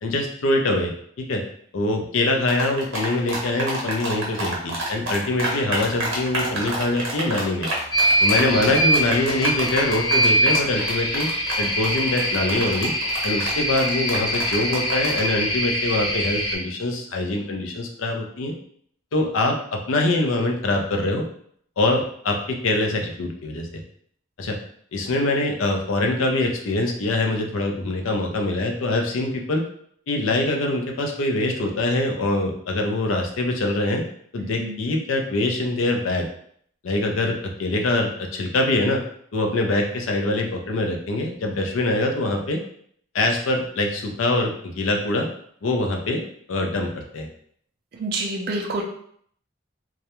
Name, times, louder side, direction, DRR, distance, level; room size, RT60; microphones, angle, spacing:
voice 1, 0.0-1.4 1.7-7.7 8.2-11.3 11.6-12.9 13.2-18.5 19.1-21.2 21.8-23.7 24.4-24.6 24.9-29.6 30.1-34.0 34.3-36.3 36.8-39.0 39.3-42.6 43.1-45.3 45.6-46.2 46.5-47.3, left 2 dB, 80° left, 3 dB, 0.5 m, -24 dB
sound 1, 2.5-15.3, right 1 dB, 70° right, 0.8 m, -28 dB
sound 2, 7.9-16.6, equal, 20° left, 0.6 m, -23 dB
voice 2, 8.4-8.7 34.6-34.7 47.9-48.8, right 2 dB, 50° right, 0 dB, 0.4 m, -28 dB
2.3 x 2.1 x 2.9 m, 0.63 s
head